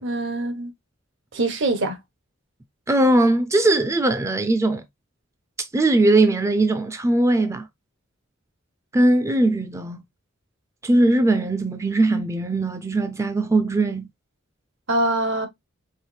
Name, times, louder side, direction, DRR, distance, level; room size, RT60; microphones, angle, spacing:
voice 1, 0.0-0.7 1.3-2.0 14.9-15.5, right 2 dB, 65° right, 1.0 m, -23 dB
voice 2, 2.9-4.8 5.6-7.7 8.9-10.0 10.8-14.1, right 2 dB, 15° right, 0.4 m, -20 dB
4.7 x 2.9 x 3.2 m
head